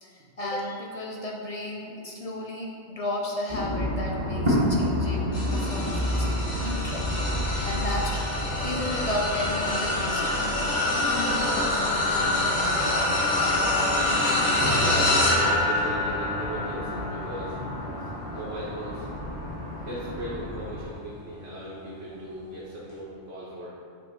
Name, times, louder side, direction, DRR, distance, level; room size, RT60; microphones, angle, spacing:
voice 1, 0.0-8.3 8.6-11.5 13.8-13.9, left 1 dB, 45° left, -1 dB, 0.5 m, -34 dB
sound 1, 3.5-20.9, equal, 25° right, 1.2 m, -31 dB
sound 2, 5.3-20.8 21.4-21.6 22.9-23.0, left 2 dB, 80° left, 1.5 m, -27 dB
voice 2, 14.6-17.6 18.3-19.1 19.8-23.7, right 1 dB, 75° right, -8 dB, 1.4 m, -38 dB
5.6 x 3.7 x 5.2 m, 2.4 s
omnidirectional pair, 1.2 m